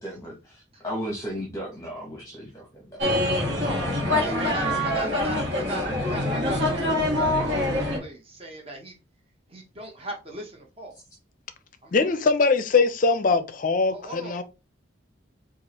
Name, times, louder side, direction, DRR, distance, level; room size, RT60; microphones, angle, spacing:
voice 1, 0.0-3.0, equal, 15° left, 0.8 m, -35 dB
sound 1, 3.0-8.0, left 1 dB, 60° right, 1.4 m, -25 dB
voice 2, 4.1-9.0 9.5-11.0 11.8-11.9 13.9-14.4, right 2 dB, 30° right, 0.7 m, -37 dB
voice 3, 11.9-14.4, left 4 dB, 40° left, 0.4 m, -22 dB
4.6 x 2.4 x 2.9 m
head